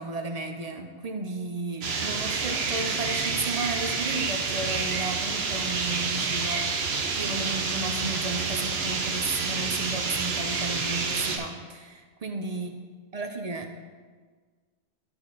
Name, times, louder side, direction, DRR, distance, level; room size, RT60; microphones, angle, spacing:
voice 1, 0.0-6.7 7.2-12.7 13.1-13.8, right 3 dB, 45° right, 5 dB, 0.6 m, -33 dB
sound 1, 1.8-11.4, right 4 dB, 70° right, 1.1 m, -28 dB
11.5 x 4.3 x 4.1 m, 1.5 s
omnidirectional pair, 1.1 m